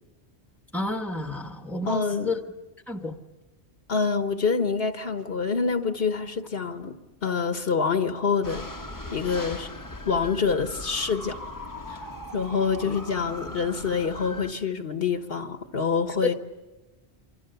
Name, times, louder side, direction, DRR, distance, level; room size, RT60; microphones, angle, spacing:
voice 1, 0.7-2.4 2.9-3.2 16.2-16.3, left 2 dB, ahead, 6 dB, 1.3 m, -30 dB
voice 2, 1.9-2.3 3.9-6.9 7.2-8.7 9.1-9.7 10.0-11.4 11.9-12.0 12.3-16.3, left 5 dB, 60° left, 8 dB, 1.4 m, -26 dB
sound 1, 8.4-14.5, left 1 dB, 20° left, 1.1 m, -39 dB
28.0 x 25.0 x 7.0 m, 1.1 s
omnidirectional pair, 1.1 m